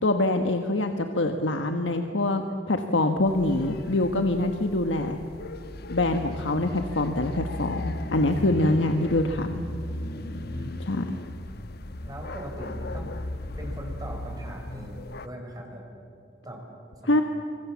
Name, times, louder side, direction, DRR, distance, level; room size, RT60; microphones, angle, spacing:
voice 1, 0.0-5.2 5.9-9.6 10.8-11.0 17.0-17.2, left 2 dB, 85° left, 5 dB, 1.4 m, -25 dB
sound 1, 3.3-15.3, left 1 dB, 60° left, 1.1 m, -36 dB
voice 2, 10.1-10.8 12.1-13.1 13.6-15.8 16.4-16.6 17.0-17.2, equal, 20° right, 1 dB, 5.1 m, -40 dB
25.5 x 25.0 x 7.4 m, 2.6 s
head